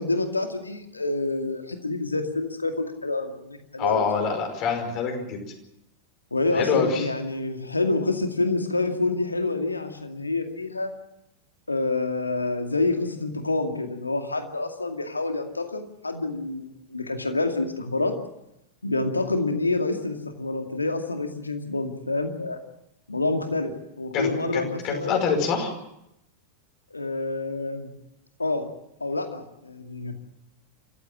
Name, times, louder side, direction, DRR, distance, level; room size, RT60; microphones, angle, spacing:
voice 1, 0.0-4.3 6.3-10.9 11.7-18.1 18.8-22.6 23.1-25.2 26.9-27.9 28.4-28.7 29.0-30.2, left 2 dB, 80° left, 6 dB, 2.2 m, -27 dB
voice 2, 3.8-5.4 6.5-7.1 24.1-25.7, left 5 dB, 40° left, 3 dB, 5.1 m, -25 dB
27.5 x 15.0 x 7.5 m, 0.82 s
figure-of-eight pair, 90°, 0 cm